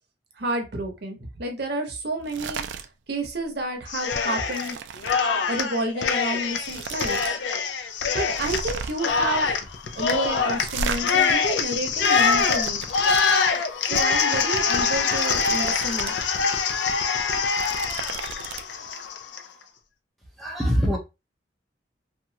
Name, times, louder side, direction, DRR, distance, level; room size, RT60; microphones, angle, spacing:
voice 1, 0.4-2.6 3.1-4.8 5.5-7.4 8.1-9.5 9.9-12.8 13.9-16.1, right 2 dB, 60° right, 3 dB, 0.8 m, -30 dB
sound 1, 2.2-2.9 3.2-3.5 3.8-5.2 6.1-6.2 6.5-7.3 7.6-7.7 8.3-9.1 10.5-11.0 11.8-13.2 14.9-16.2 16.5-16.6 17.3-18.6, right 5 dB, 80° right, 0.4 m, -34 dB
Cheering, 3.9-4.7 5.0-19.4, left 5 dB, 75° left, 0.4 m, -24 dB
voice 2, 20.4-21.0, equal, ahead, -1 dB, 0.5 m, -23 dB
2.8 x 2.3 x 2.7 m, 0.25 s
head